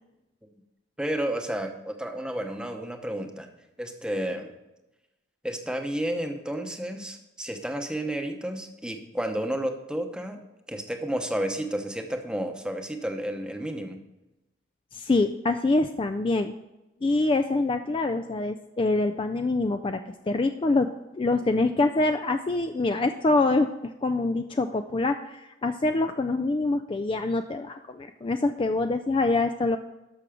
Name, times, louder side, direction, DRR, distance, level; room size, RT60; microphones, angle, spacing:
voice 1, 1.0-3.5 3.8-4.5 5.4-10.4 10.7-14.0, right 1 dB, 5° right, 5 dB, 0.9 m, -31 dB
voice 2, 14.9-16.5 17.0-29.8, left 2 dB, 25° left, 8 dB, 0.3 m, -25 dB
12.5 x 6.1 x 5.0 m, 0.99 s
head